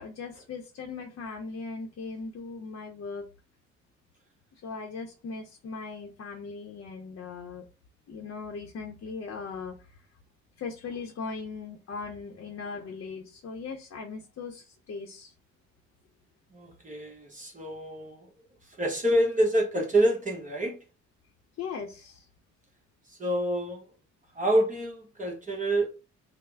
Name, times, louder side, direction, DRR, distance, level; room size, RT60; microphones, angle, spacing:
voice 1, 0.0-3.3 4.6-7.6 8.1-9.8 10.6-15.3 21.6-22.3, left 4 dB, 50° left, 0.7 m, -39 dB
voice 2, 16.5-18.3 18.7-20.8 23.1-23.9 24.3-25.9, right 1 dB, 25° right, 1.0 m, -27 dB
3.2 x 2.1 x 3.4 m
cardioid pair, 90°, 30 cm